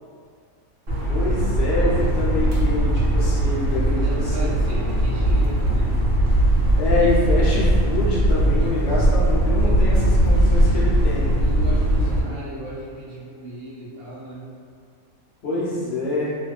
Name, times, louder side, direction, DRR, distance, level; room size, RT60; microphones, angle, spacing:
sound 1, 0.9-12.2, right 1 dB, 65° right, 0.9 m, -19 dB
voice 1, 1.1-4.5 6.8-11.3 15.4-16.3, left 2 dB, 60° left, -7 dB, 0.7 m, -26 dB
voice 2, 4.0-5.9 9.0-9.2 11.4-14.5, right 1 dB, 90° right, -7 dB, 1.1 m, -35 dB
2.4 x 2.3 x 2.3 m, 2.2 s
omnidirectional pair, 1.5 m